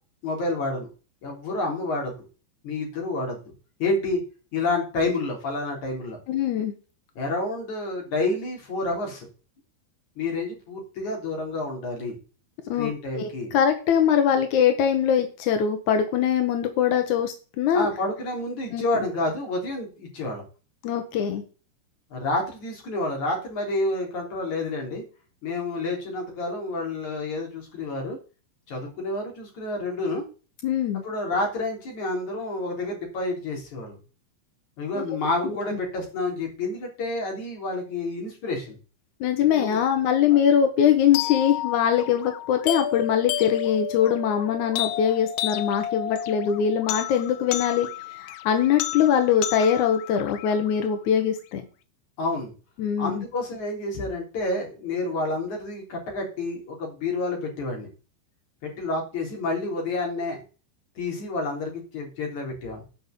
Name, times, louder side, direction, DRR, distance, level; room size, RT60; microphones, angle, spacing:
voice 1, 0.2-0.9 1.2-2.1 2.6-3.4 3.8-4.2 4.5-6.2 7.2-9.3 10.2-12.2 12.8-13.5 17.7-20.4 22.1-25.0 25.4-28.2 28.7-30.2 31.0-34.0 34.8-38.8 39.6-39.8 40.3-40.4 52.2-52.5 53.0-57.9 58.8-60.4 61.0-62.8, left 2 dB, 45° left, 0 dB, 4.6 m, -29 dB
voice 2, 6.3-6.7 12.7-12.9 13.2-17.9 18.7-18.8 20.8-21.4 30.6-31.0 35.0-35.1 35.4-35.8 39.2-51.6 52.8-53.2, left 8 dB, 65° left, 6 dB, 1.9 m, -22 dB
sound 1, 41.1-51.2, left 11 dB, 85° left, 3.0 m, -32 dB
10.5 x 5.6 x 8.3 m, 0.35 s
omnidirectional pair, 5.3 m